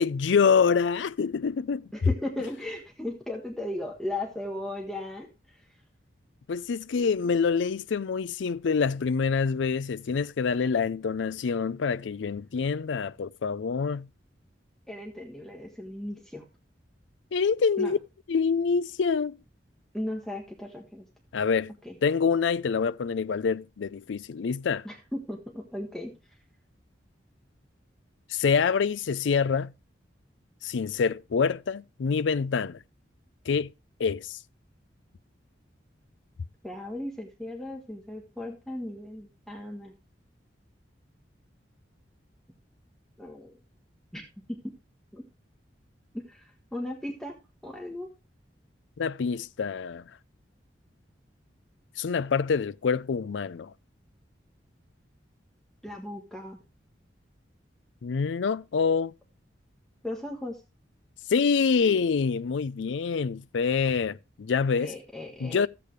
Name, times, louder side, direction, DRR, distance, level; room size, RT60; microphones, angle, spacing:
voice 1, 0.0-1.9 6.5-14.1 17.3-18.0 18.3-19.4 21.3-21.7 22.0-24.9 28.3-29.7 30.6-32.8 33.5-33.7 34.0-34.4 49.0-50.0 52.0-53.7 58.0-59.1 61.3-64.9 65.4-65.7, left 5 dB, 80° left, 0.4 m, -26 dB
voice 2, 1.9-5.6 14.9-16.4 17.8-18.0 19.9-21.0 21.8-21.9 24.8-26.1 36.6-39.9 43.2-43.5 44.1-44.2 44.5-44.6 45.1-45.2 46.3-47.4 47.6-48.1 55.8-56.6 60.0-60.6 64.8-65.7, left 1 dB, 5° left, 1.4 m, -36 dB
13.5 x 8.3 x 3.2 m
head